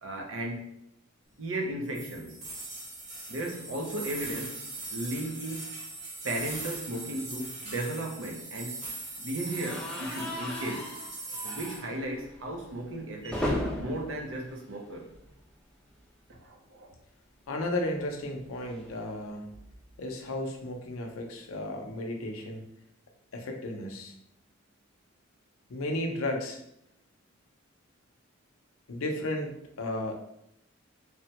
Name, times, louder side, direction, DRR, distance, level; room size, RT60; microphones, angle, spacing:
voice 1, 0.0-0.7 1.4-2.4 3.3-4.6 4.9-5.7 6.2-8.8 9.2-10.9 11.4-13.4 13.8-15.0 16.3-16.9, right 1 dB, 75° right, 1 dB, 0.6 m, -35 dB
sound 1, 1.9-11.8, right 2 dB, 35° right, 0.9 m, -40 dB
sound 2, 9.5-15.5 15.8-16.0 16.3-16.4 17.6-20.0, left 1 dB, 5° left, 0.3 m, -38 dB
voice 2, 17.5-19.5 20.0-22.6 23.3-24.1 25.7-26.6 28.9-30.1, left 1 dB, 85° left, 2 dB, 0.6 m, -34 dB
3.3 x 2.1 x 2.8 m, 0.77 s
head